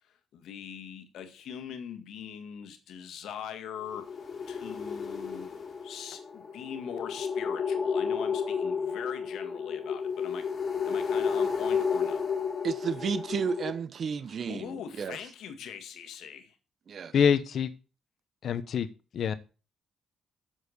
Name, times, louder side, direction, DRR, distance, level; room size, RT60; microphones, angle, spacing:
voice 1, 0.3-4.1 4.5-10.5 10.9-12.2 14.5-16.5, left 8 dB, 80° left, 1.7 m, -42 dB
sound 1, 3.8-13.7, left 6 dB, 45° left, 3.4 m, -32 dB
voice 2, 12.6-15.2 16.9-17.1, right 6 dB, 55° right, 0.7 m, -32 dB
voice 3, 17.1-17.7 18.4-18.9 19.1-19.3, left 7 dB, 65° left, 1.1 m, -25 dB
8.0 x 7.3 x 6.4 m
cardioid pair, 90°, 0 cm